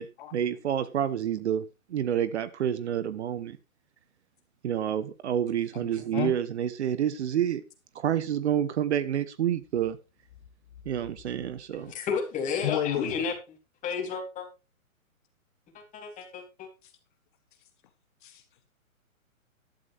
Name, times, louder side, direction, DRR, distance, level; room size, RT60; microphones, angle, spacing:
voice 1, 0.3-1.6 1.9-3.6 4.6-7.6 7.9-10.0 10.8-11.9, right 10 dB, 50° right, 15 dB, 1.2 m, -28 dB
voice 2, 5.8-6.3 12.6-13.1 18.2-18.4, left 11 dB, 35° left, 9 dB, 1.4 m, -31 dB
voice 3, 11.9-13.6 13.8-14.5 15.7-16.7, left 6 dB, 15° left, 2 dB, 3.5 m, -32 dB
14.0 x 12.0 x 2.6 m, 0.27 s
hypercardioid pair, 140°, 42 cm